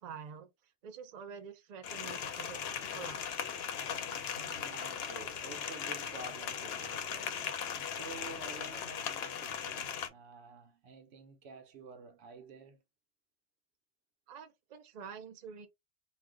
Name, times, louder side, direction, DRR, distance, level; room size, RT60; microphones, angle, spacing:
voice 1, 0.0-0.5 0.8-3.5 14.3-15.7, right 6 dB, 80° right, 0.3 m, -47 dB
sound 1, 1.8-10.1, left 7 dB, 65° left, 0.7 m, -38 dB
voice 2, 4.3-7.5 7.9-12.8, right 3 dB, 65° right, 0.8 m, -50 dB
2.4 x 2.2 x 3.5 m
omnidirectional pair, 1.3 m